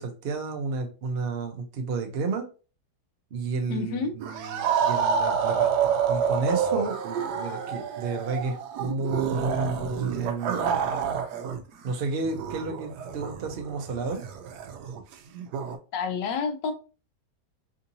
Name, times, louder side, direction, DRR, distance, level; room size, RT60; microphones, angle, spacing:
voice 1, 0.0-2.5 3.3-10.9 11.8-14.2, right 4 dB, 60° right, 4 dB, 0.6 m, -31 dB
voice 2, 3.7-4.1 15.9-16.7, left 5 dB, 80° left, 7 dB, 1.3 m, -29 dB
sound 1, 4.2-11.6 11.9-15.8, right 7 dB, 75° right, 1.1 m, -28 dB
3.6 x 2.6 x 2.7 m, 0.34 s
omnidirectional pair, 1.9 m